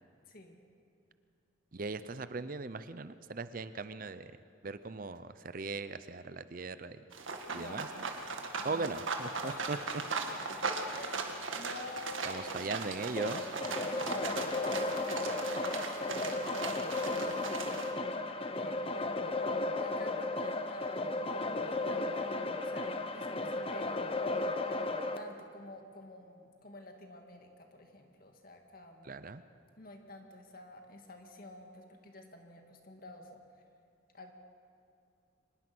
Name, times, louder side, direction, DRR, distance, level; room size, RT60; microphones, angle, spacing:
voice 1, 1.7-4.3 4.6-7.0 7.5-8.1 8.6-9.8 12.2-13.4 29.0-29.4, right 3 dB, 45° right, 13 dB, 0.6 m, -39 dB
sound 1, 7.1-17.9, right 4 dB, 80° right, 1.9 m, -38 dB
voice 2, 7.5-7.8 8.6-9.0 9.4-9.6 10.3-10.4 10.9-12.9 13.9-17.9 18.5-19.3 19.7-23.9 25.2-29.2 29.8-33.3 34.1-34.3, left 2 dB, 45° left, 4 dB, 2.1 m, -50 dB
sound 2, 13.2-25.2, left 2 dB, 30° left, 0.9 m, -34 dB
24.5 x 20.5 x 6.2 m, 2.5 s
head